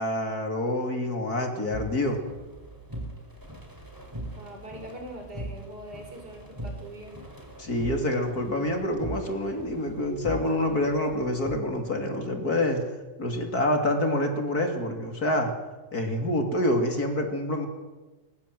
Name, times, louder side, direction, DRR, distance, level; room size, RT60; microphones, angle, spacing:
voice 1, 0.0-2.2 7.6-12.8 13.2-15.5 15.9-17.7, left 1 dB, 55° left, 4 dB, 3.5 m, -27 dB
sound 1, 1.7-11.5, right 1 dB, 10° right, 4.3 m, -40 dB
voice 2, 4.4-7.2, right 1 dB, 60° right, 3 dB, 5.7 m, -42 dB
23.5 x 21.0 x 7.9 m, 1.2 s
omnidirectional pair, 2.0 m